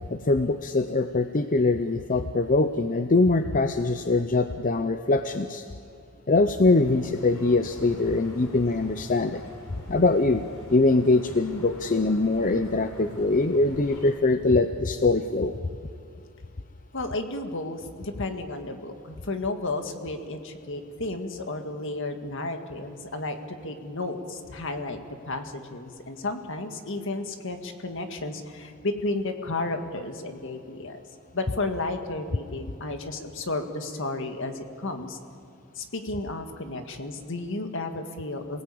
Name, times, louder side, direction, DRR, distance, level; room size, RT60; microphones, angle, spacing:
voice 1, 0.1-5.6 6.3-9.4 9.9-10.4 10.7-15.5, left 3 dB, 40° left, 9 dB, 0.7 m, -23 dB
sound 1, 6.6-14.1, left 1 dB, 80° left, 4.0 m, -44 dB
voice 2, 16.9-25.0 25.2-31.0 31.3-35.2 35.8-38.6, left 2 dB, 60° left, 6 dB, 2.0 m, -33 dB
28.0 x 18.5 x 8.7 m, 2.4 s
head